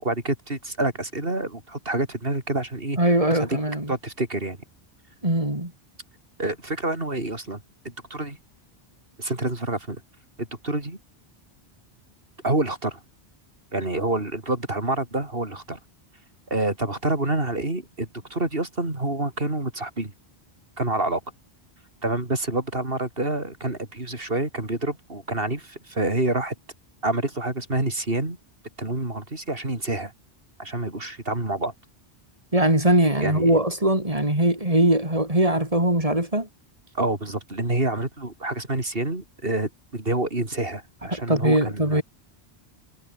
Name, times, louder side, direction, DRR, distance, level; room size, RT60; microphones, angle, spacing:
voice 1, 0.0-3.0 3.3-3.5 3.9-4.6 6.4-8.4 9.2-10.0 10.4-11.0 12.4-13.0 13.7-15.8 16.5-20.1 20.8-21.2 22.0-26.5 27.0-28.4 28.8-30.1 30.6-31.7 33.2-33.6 36.9-42.0, right 2 dB, 65° right, 4.5 m, -27 dB
voice 2, 3.0-3.9 5.2-5.7 32.5-36.5 41.1-42.0, right 1 dB, 35° right, 5.4 m, -21 dB
omnidirectional pair, 1.1 m